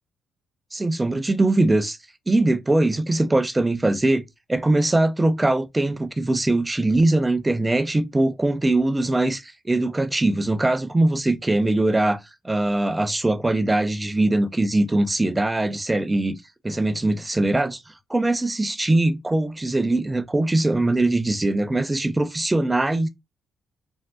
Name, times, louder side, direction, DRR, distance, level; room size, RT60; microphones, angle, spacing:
voice 1, 0.7-2.0 2.3-16.4 16.6-23.1, right 2 dB, 15° right, 0.4 m, -21 dB
3.5 x 2.2 x 2.3 m
cardioid pair, 90°, 0 cm